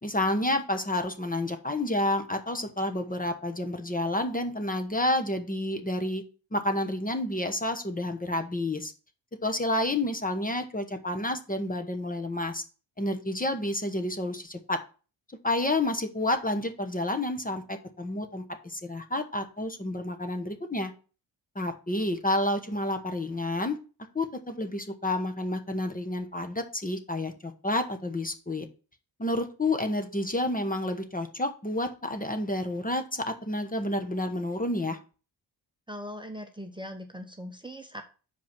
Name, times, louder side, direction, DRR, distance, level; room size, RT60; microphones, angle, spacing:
voice 1, 0.0-6.2 6.5-8.9 9.4-12.6 13.0-14.8 15.4-20.9 21.5-23.8 24.1-28.7 29.2-35.0, left 1 dB, 20° left, 6 dB, 1.2 m, -30 dB
voice 2, 35.9-38.0, equal, 10° right, 4 dB, 1.0 m, -40 dB
6.0 x 4.9 x 6.0 m, 0.35 s
cardioid pair, 65°, 45 cm